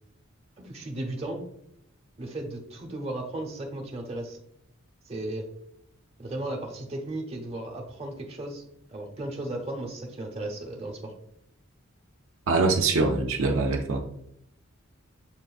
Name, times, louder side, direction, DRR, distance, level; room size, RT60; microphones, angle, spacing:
voice 1, 0.6-1.5 2.2-4.4 5.0-5.5 6.2-8.6 8.9-11.1, right 1 dB, 30° right, 1 dB, 0.8 m, -35 dB
voice 2, 12.5-14.0, right 3 dB, 70° right, 3 dB, 0.5 m, -23 dB
7.1 x 2.5 x 2.3 m, 0.74 s
head